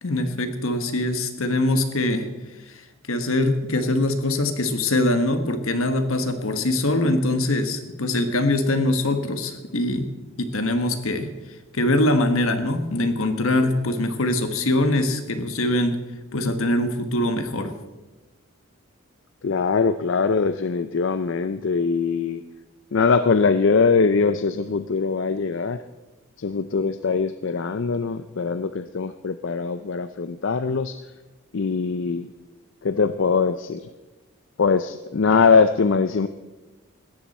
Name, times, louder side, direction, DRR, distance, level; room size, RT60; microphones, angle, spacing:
voice 1, 0.0-2.3 2.7-2.8 3.1-10.1 10.4-11.3 11.7-16.0 16.3-17.7, left 1 dB, 75° left, 8 dB, 1.4 m, -23 dB
voice 2, 19.4-22.4 22.9-25.8 26.4-31.0 31.5-32.3 32.8-33.9 34.6-36.3, left 5 dB, 60° left, 11 dB, 0.5 m, -22 dB
17.0 x 13.0 x 4.3 m, 1.1 s
head